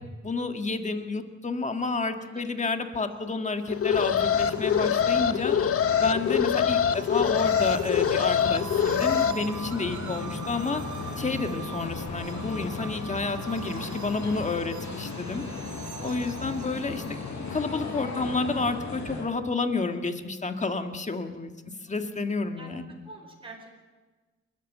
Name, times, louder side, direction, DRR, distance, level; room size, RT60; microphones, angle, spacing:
voice 1, 0.2-5.6 6.0-10.8 11.2-15.4 16.0-17.2 17.5-21.5 21.8-23.0, left 3 dB, 25° left, 6 dB, 1.7 m, -30 dB
sound 1, 3.1-17.7, right 7 dB, 75° right, 1.9 m, -45 dB
Alarm, 3.7-9.3, left 8 dB, 50° left, 0.9 m, -24 dB
sound 2, 3.9-19.2, left 4 dB, 65° left, 5.2 m, -37 dB
voice 2, 10.1-10.5 16.0-16.3 21.6-22.2 22.6-22.8 23.0-23.7, right 2 dB, 15° right, 0 dB, 4.8 m, -47 dB
29.0 x 14.0 x 9.2 m, 1.3 s
wide cardioid pair, 175°, 30 cm